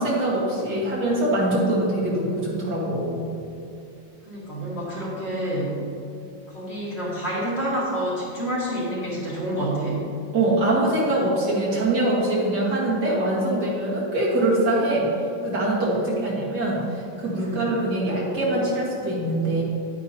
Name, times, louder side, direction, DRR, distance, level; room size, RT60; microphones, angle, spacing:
voice 1, 0.0-3.2 10.3-15.1 15.4-19.6, right 1 dB, 55° right, -6 dB, 2.1 m, -23 dB
voice 2, 4.3-5.7 6.5-10.0 15.9-16.4 17.4-17.7, right 1 dB, 30° left, -7 dB, 2.5 m, -28 dB
10.5 x 9.4 x 2.8 m, 2.5 s
omnidirectional pair, 2.2 m